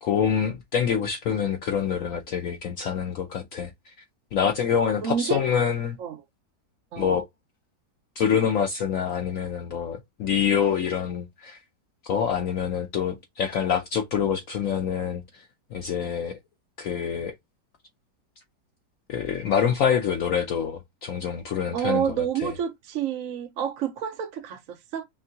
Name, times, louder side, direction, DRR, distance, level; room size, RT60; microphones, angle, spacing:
voice 1, 0.0-3.9 4.3-6.0 7.0-7.3 8.2-11.6 12.0-16.4 16.8-17.4 19.1-22.5, left 8 dB, 70° left, 0.8 m, -26 dB
voice 2, 5.0-5.4 6.0-6.2 6.9-7.2 21.7-25.0, right 8 dB, 60° right, 1.0 m, -29 dB
4.5 x 3.3 x 2.7 m
omnidirectional pair, 1.9 m